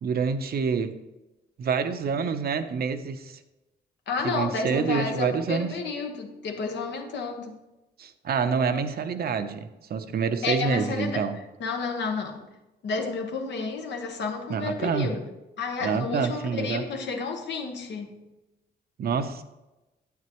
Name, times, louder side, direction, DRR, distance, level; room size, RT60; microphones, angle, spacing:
voice 1, 0.0-1.0 1.6-3.4 4.2-5.7 8.0-11.3 14.5-15.1 15.8-16.8 19.0-19.4, right 6 dB, 60° right, 9 dB, 0.7 m, -27 dB
voice 2, 4.1-7.6 10.4-12.4 12.8-18.2, left 4 dB, 80° left, 3 dB, 1.2 m, -31 dB
9.4 x 8.6 x 3.0 m, 1.0 s
wide cardioid pair, 150°, 18 cm